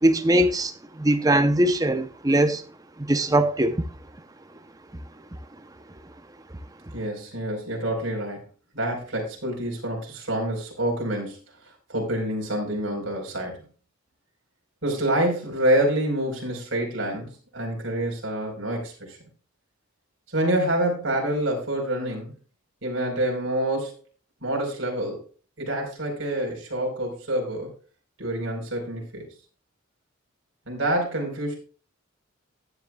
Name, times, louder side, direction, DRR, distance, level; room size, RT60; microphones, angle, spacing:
voice 1, 0.0-2.6 3.0-3.9 5.3-5.4, right 1 dB, 20° right, 0.7 m, -21 dB
voice 2, 6.9-8.4 8.7-11.4 11.9-13.6 14.8-19.2 20.3-22.3 22.8-24.0 24.4-25.2 25.6-27.7 28.2-29.3 30.7-31.5, right 1 dB, 65° right, 4.6 m, -27 dB
14.5 x 9.6 x 2.4 m
head